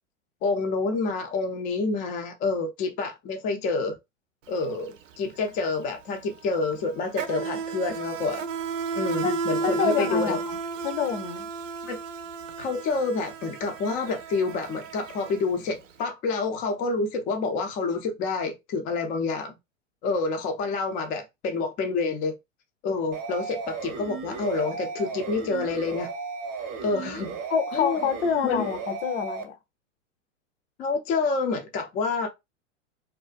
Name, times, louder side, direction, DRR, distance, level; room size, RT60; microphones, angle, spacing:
voice 1, 0.4-4.0 4.5-8.4 9.0-10.4 11.8-12.0 12.6-19.6 20.0-22.3 22.8-26.1 26.8-27.4 27.7-28.1 28.4-28.7 30.8-32.3, left 3 dB, 20° left, 0.3 m, -28 dB
Insect, 4.5-4.7 4.9-15.9, right 5 dB, 80° right, 0.5 m, -33 dB
voice 2, 9.6-10.6 10.8-11.5 27.5-29.6, left 7 dB, 65° left, 0.7 m, -27 dB
sound 1, 23.1-29.4, right 4 dB, 35° right, 0.7 m, -35 dB
2.4 x 2.1 x 2.4 m
hypercardioid pair, 100°, 38 cm